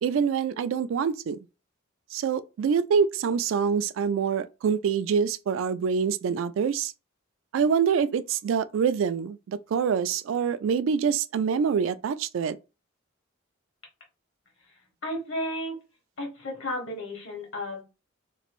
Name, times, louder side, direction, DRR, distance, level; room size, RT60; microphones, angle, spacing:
voice 1, 0.0-1.4 2.1-6.9 7.5-12.6, right 6 dB, 70° right, 0.3 m, -25 dB
voice 2, 15.0-15.8 16.2-17.8, left 1 dB, 70° left, 1.4 m, -33 dB
3.0 x 2.5 x 3.0 m
head